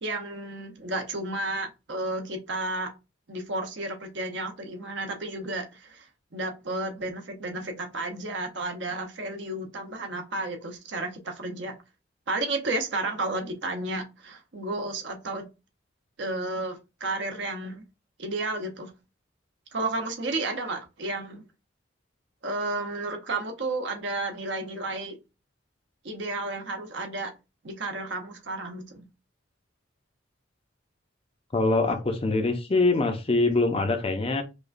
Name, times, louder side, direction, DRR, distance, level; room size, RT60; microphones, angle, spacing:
voice 1, 0.0-2.9 3.3-6.1 6.3-11.7 12.3-15.5 16.2-17.8 18.2-18.9 19.7-21.4 22.4-25.2 26.0-27.3 27.6-29.0, right 2 dB, 60° right, 0.8 m, -32 dB
voice 2, 31.5-34.4, left 3 dB, 30° left, 0.5 m, -24 dB
4.9 x 2.2 x 2.5 m
head